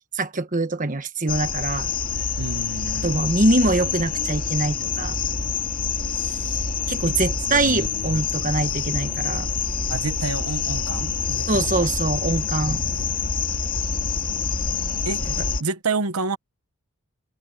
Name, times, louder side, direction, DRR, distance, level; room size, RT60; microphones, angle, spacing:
voice 1, 0.1-1.9 3.0-5.2 6.9-9.5 11.5-12.8, right 2 dB, 35° right, 1.5 m, -23 dB
sound 1, 1.3-15.6, left 5 dB, 40° left, 2.2 m, -26 dB
voice 2, 2.4-3.1 6.1-6.6 7.1-7.2 7.5-7.9 9.9-11.9 12.6-13.1 15.1-15.3 15.6-16.4, right 4 dB, 85° right, 1.1 m, -30 dB
head